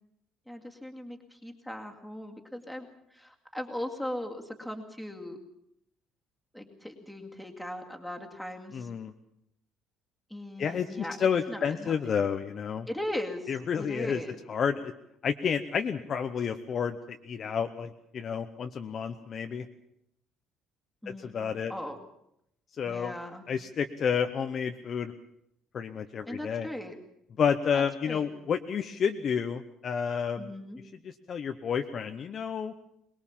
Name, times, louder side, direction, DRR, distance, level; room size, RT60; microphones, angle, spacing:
voice 1, 0.5-2.9 3.1-5.4 6.5-8.9 10.3-11.2 11.5-12.2 12.9-14.4 21.0-22.0 22.8-23.5 26.3-27.0 27.7-28.3 30.4-30.8, left 1 dB, ahead, 3 dB, 2.3 m, -39 dB
voice 2, 8.7-9.1 10.6-12.9 13.5-14.2 14.5-14.9 15.2-17.0 17.2-19.7 21.1-21.7 22.8-23.1 23.5-25.1 25.7-26.7 27.4-30.5 31.0-32.7, left 7 dB, 30° left, 7 dB, 0.8 m, -30 dB
22.5 x 21.0 x 7.4 m, 0.76 s
cardioid pair, 175°, 0 cm